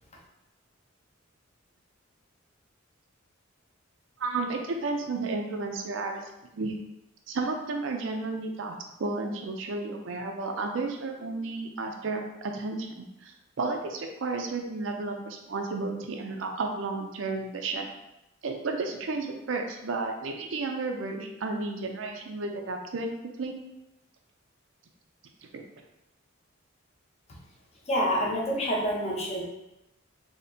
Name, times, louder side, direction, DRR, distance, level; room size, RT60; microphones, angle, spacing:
voice 1, 4.2-6.3 6.5-6.7 7.3-17.9 18.4-23.1 23.4-23.6 25.5-25.6, right 3 dB, 65° right, 3 dB, 0.5 m, -32 dB
voice 2, 27.9-29.4, equal, 30° left, -3 dB, 0.7 m, -27 dB
4.2 x 2.8 x 2.6 m, 0.92 s
head